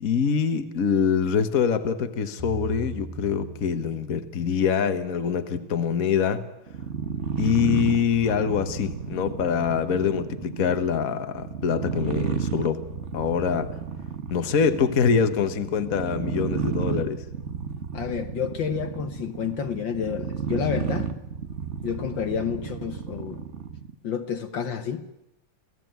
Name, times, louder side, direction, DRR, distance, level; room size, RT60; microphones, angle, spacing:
voice 1, 0.0-6.5 7.4-12.8 13.1-13.7 14.3-17.2, left 7 dB, 45° left, 1.7 m, -24 dB
sound 1, 2.4-4.8, right 1 dB, 10° right, 2.3 m, -39 dB
sound 2, 6.7-23.9, right 7 dB, 40° right, 1.2 m, -32 dB
voice 2, 17.9-21.1 21.8-23.4 24.0-25.0, left 7 dB, 60° left, 1.8 m, -29 dB
28.0 x 17.5 x 9.4 m
omnidirectional pair, 2.4 m